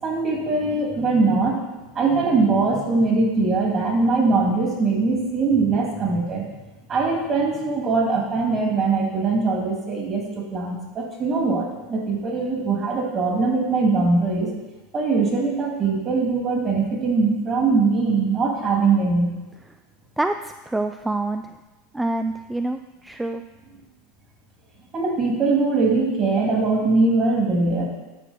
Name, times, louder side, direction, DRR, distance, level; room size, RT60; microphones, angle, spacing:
voice 1, 0.0-1.6 1.9-6.5 6.9-14.5 14.9-19.3 24.9-27.9, right 3 dB, 35° right, 0 dB, 2.7 m, -21 dB
voice 2, 20.2-21.6 21.9-23.4, right 2 dB, 10° right, 7 dB, 0.4 m, -26 dB
9.9 x 6.1 x 4.4 m, 1.1 s
hypercardioid pair, 90°, 0 cm